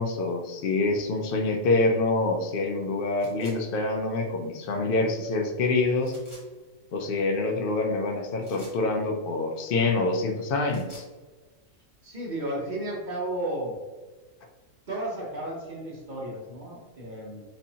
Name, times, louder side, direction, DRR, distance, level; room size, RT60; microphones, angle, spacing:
voice 1, 0.0-6.1 6.9-11.0, left 3 dB, 65° left, 3 dB, 0.5 m, -26 dB
sound 1, 3.2-3.6 6.0-6.4 8.4-8.8 10.5-11.1, equal, 20° left, 1.2 m, -50 dB
voice 2, 12.0-13.8 14.9-17.4, right 1 dB, 40° right, -3 dB, 0.8 m, -33 dB
4.3 x 2.6 x 2.7 m, 1.3 s
omnidirectional pair, 1.4 m